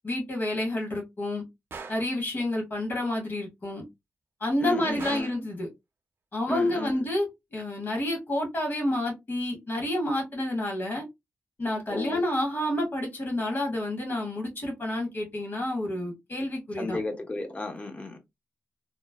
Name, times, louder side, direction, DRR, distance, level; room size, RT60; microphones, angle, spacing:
voice 1, 0.0-1.4 1.9-3.8 4.4-5.7 6.3-7.3 7.5-11.0 11.6-17.0, left 1 dB, 45° left, 1.4 m, -29 dB
Gunshot gunfire, 1.7-2.1 5.0-5.5, right 4 dB, 55° right, 0.5 m, -40 dB
voice 2, 4.6-5.3 6.5-7.0 11.9-12.2 16.8-18.2, left 2 dB, 25° left, 0.7 m, -34 dB
3.0 x 2.1 x 2.2 m
wide cardioid pair, 105°, 5 cm